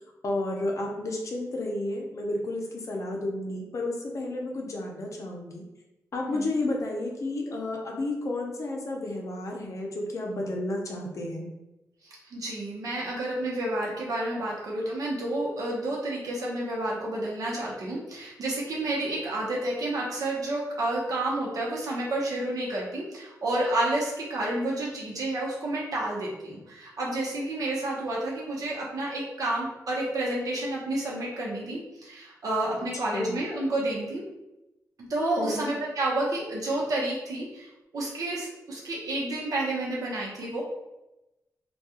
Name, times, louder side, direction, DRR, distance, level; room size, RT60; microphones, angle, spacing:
voice 1, 0.2-5.6 6.1-11.5 33.1-33.4 35.4-35.7, left 2 dB, 55° left, 0 dB, 0.6 m, -31 dB
voice 2, 12.0-34.2 35.0-37.7 37.9-40.6, right 1 dB, 65° right, -4 dB, 0.8 m, -30 dB
2.3 x 2.2 x 2.8 m, 0.97 s
cardioid pair, 95°, 6 cm